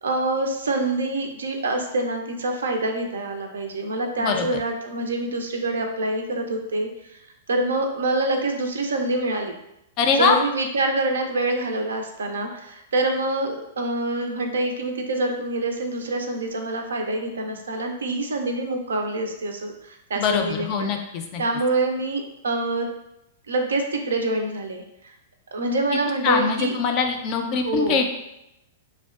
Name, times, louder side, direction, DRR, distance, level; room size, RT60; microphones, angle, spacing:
voice 1, 0.0-7.2 7.5-9.5 10.2-20.9 21.4-22.9 23.5-25.1 25.5-26.7 27.6-28.0, right 2 dB, 80° right, 3 dB, 0.4 m, -26 dB
voice 2, 10.0-10.4 20.2-21.4 26.2-28.1, left 5 dB, 40° left, 5 dB, 0.4 m, -22 dB
2.6 x 2.2 x 2.3 m, 0.85 s
hypercardioid pair, 110°, 0 cm